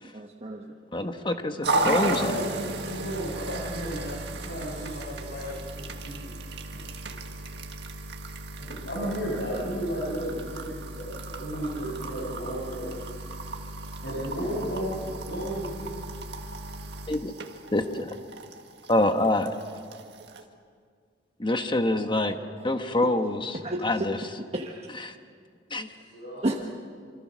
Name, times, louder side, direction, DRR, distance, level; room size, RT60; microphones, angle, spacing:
voice 1, 0.1-0.6 23.6-24.1 24.5-24.9 26.4-26.5, right 1 dB, 35° right, 1 dB, 1.2 m, -31 dB
voice 2, 0.9-2.3 17.1-17.3 17.7-18.1 18.9-19.5 21.4-22.3 22.6-24.2 24.9-25.1 25.7-25.9, left 1 dB, 25° left, 7 dB, 1.2 m, -26 dB
voice 3, 1.6-5.5 5.8-6.3 6.7-6.8 8.6-13.0 14.0-15.9 25.9-26.6, equal, 65° left, -5 dB, 6.8 m, -33 dB
sound 1, 1.6-20.4, right 2 dB, 65° right, 1.9 m, -35 dB
28.0 x 25.0 x 6.2 m, 2.1 s
head